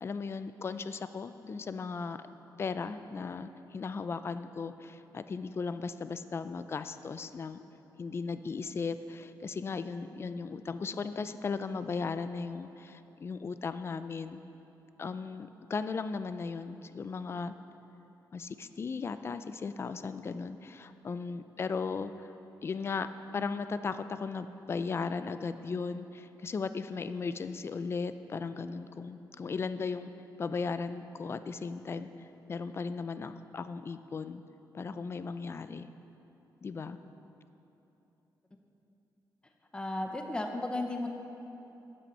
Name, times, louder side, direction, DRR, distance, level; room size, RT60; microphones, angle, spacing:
voice 1, 0.0-2.2 2.6-7.6 8.0-14.4 15.0-17.5 18.3-22.3 22.6-23.1 23.3-30.1 30.4-34.4 34.7-35.9 36.6-37.0, left 4 dB, 35° left, 12 dB, 0.4 m, -36 dB
voice 2, 39.7-41.1, left 2 dB, 10° left, 3 dB, 0.7 m, -34 dB
12.5 x 8.4 x 4.4 m, 3.0 s
wide cardioid pair, 145°, 8 cm